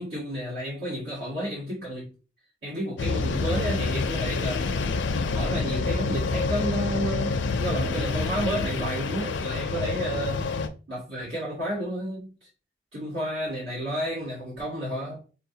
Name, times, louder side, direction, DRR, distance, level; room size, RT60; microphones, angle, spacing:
voice 1, 0.0-2.1 2.6-4.7 5.3-10.5 10.9-12.5 12.9-15.2, right 1 dB, 70° right, 1.9 m, -31 dB
sound 1, 3.0-10.7, left 4 dB, 75° left, 0.4 m, -27 dB
5.6 x 2.3 x 2.7 m
head